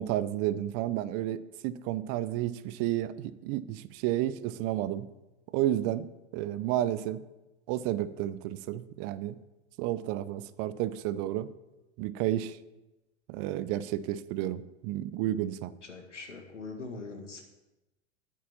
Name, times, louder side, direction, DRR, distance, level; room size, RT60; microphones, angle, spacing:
voice 1, 0.0-5.1 5.5-6.1 6.3-7.2 7.7-9.4 9.8-11.5 12.0-12.6 13.3-15.7, right 13 dB, 40° right, 16 dB, 0.6 m, -31 dB
voice 2, 15.9-17.4, left 3 dB, 90° left, 4 dB, 1.9 m, -42 dB
8.5 x 8.4 x 7.2 m, 1.0 s
figure-of-eight pair, 90°, 35 cm